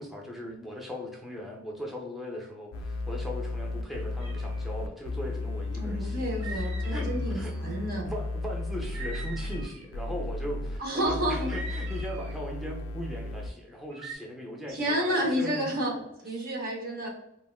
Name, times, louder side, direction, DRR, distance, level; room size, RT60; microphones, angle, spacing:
voice 1, 0.0-15.7 16.4-16.5, equal, ahead, 0 dB, 0.5 m, -39 dB
sound 1, 2.7-9.7 9.9-10.8 11.0-13.5, left 2 dB, 75° left, 0.3 m, -34 dB
sound 2, 4.2-4.6 6.3-7.7 8.8-9.9 11.4-12.4 13.9-14.2, right 3 dB, 85° right, 0.6 m, -43 dB
voice 2, 5.8-8.1 10.8-11.5 14.7-17.1, equal, 45° right, -1 dB, 0.6 m, -30 dB
3.3 x 2.1 x 2.3 m, 0.81 s
head